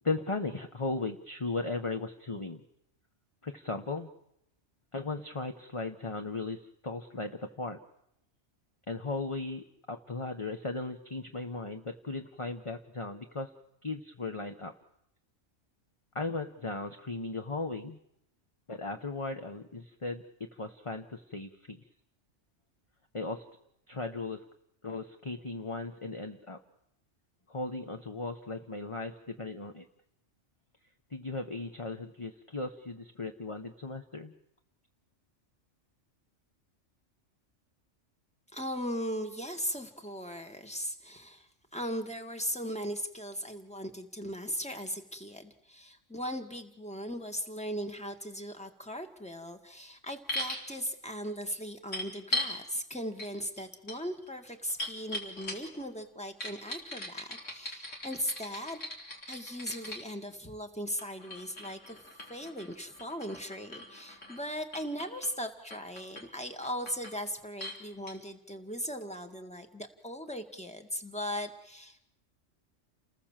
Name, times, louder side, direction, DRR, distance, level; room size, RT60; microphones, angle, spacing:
voice 1, 0.0-2.6 3.4-4.1 4.9-7.8 8.9-13.5 13.8-14.7 16.1-18.0 18.7-21.8 23.1-23.4 23.9-24.4 24.8-26.6 27.5-29.8 31.1-34.3, left 3 dB, 25° left, 6 dB, 1.3 m, -37 dB
voice 2, 38.5-41.5 41.7-58.8 59.3-72.0, equal, 5° left, 6 dB, 2.0 m, -38 dB
sound 1, 50.3-50.6 51.9-52.6 53.2-53.3 53.6-55.8 56.4-60.0 61.0-64.4 64.7-65.3 65.7-66.2 66.6-67.2 67.6-67.8 68.1-68.2, left 1 dB, 80° left, 4.5 m, -39 dB
29.5 x 20.0 x 7.5 m, 0.78 s
omnidirectional pair, 1.2 m